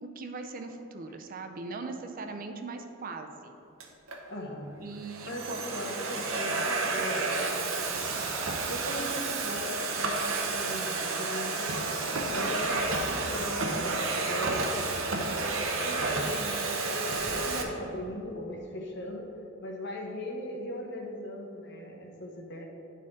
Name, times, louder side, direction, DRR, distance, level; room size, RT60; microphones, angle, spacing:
voice 1, 0.0-3.6 4.8-5.6, right 3 dB, 45° right, 6 dB, 0.4 m, -40 dB
Domestic sounds home sounds, 3.8-4.2 4.9-17.6, right 3 dB, 70° right, 0.8 m, -31 dB
voice 2, 4.3-4.8 5.2-7.8 8.5-11.7 12.3-19.3 19.6-22.6, left 1 dB, 55° left, 1 dB, 0.9 m, -39 dB
9.9 x 4.2 x 3.7 m, 2.9 s
head